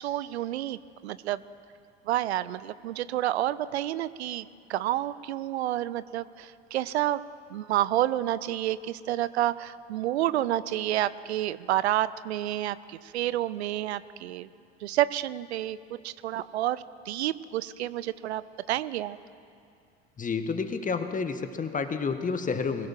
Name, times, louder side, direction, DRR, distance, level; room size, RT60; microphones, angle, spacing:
voice 1, 0.0-1.4 2.1-7.2 7.5-14.5 14.8-15.8 16.0-18.4 18.7-19.2, right 13 dB, 70° right, 17 dB, 0.6 m, -29 dB
voice 2, 20.2-22.9, left 5 dB, 25° left, 8 dB, 1.6 m, -30 dB
21.5 x 17.0 x 7.6 m, 2.4 s
figure-of-eight pair, 70°, 33 cm